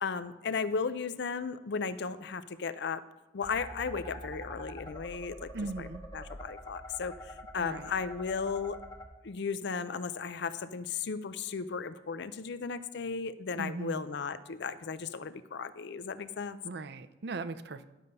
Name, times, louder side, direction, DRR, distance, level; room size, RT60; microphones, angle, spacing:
voice 1, 0.0-3.1 3.3-5.5 5.8-5.9 6.1-8.8 9.2-16.6, left 5 dB, 65° left, 14 dB, 0.5 m, -35 dB
sound 1, 3.4-9.0, equal, 20° left, 1.0 m, -46 dB
voice 2, 5.5-6.0 7.6-7.9 13.6-14.0 16.6-17.9, right 3 dB, 60° right, 12 dB, 0.6 m, -38 dB
11.5 x 6.7 x 5.4 m, 1.0 s
head